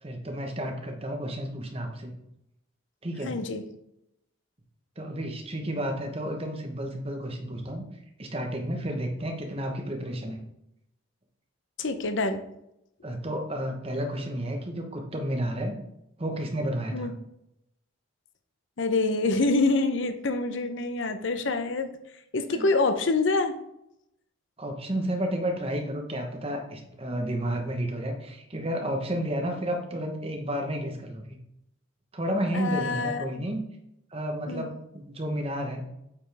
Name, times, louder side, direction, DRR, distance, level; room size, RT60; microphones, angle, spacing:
voice 1, 0.0-2.1 3.0-3.3 5.0-7.8 8.2-10.4 13.0-15.7 16.2-17.1 22.5-22.7 24.6-31.4 32.1-33.6 34.1-35.8, right 1 dB, 30° right, 3 dB, 1.1 m, -31 dB
voice 2, 3.2-3.6 11.8-12.4 16.9-17.1 18.8-21.9 22.3-23.5 32.5-33.5 34.5-34.6, left 3 dB, 60° left, 8 dB, 0.7 m, -26 dB
8.4 x 5.3 x 3.4 m, 0.80 s
head